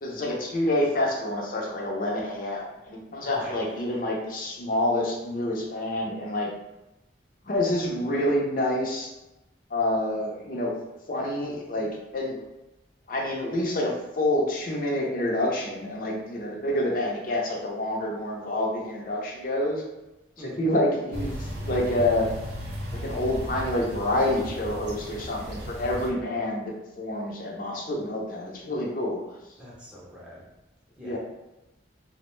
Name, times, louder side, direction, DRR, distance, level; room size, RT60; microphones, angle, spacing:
voice 1, 0.0-6.5 7.5-9.1 9.7-10.7 11.1-12.4 13.1-19.8 20.4-22.3 22.9-29.2 31.0-31.2, left 1 dB, 50° left, -2 dB, 0.5 m, -27 dB
voice 2, 3.3-4.0 20.4-20.6 29.6-30.5 31.0-31.2, equal, 5° right, -6 dB, 0.5 m, -45 dB
sound 1, 21.1-26.1, equal, 65° right, 0.6 m, -35 dB
2.5 x 2.0 x 3.0 m, 0.98 s
head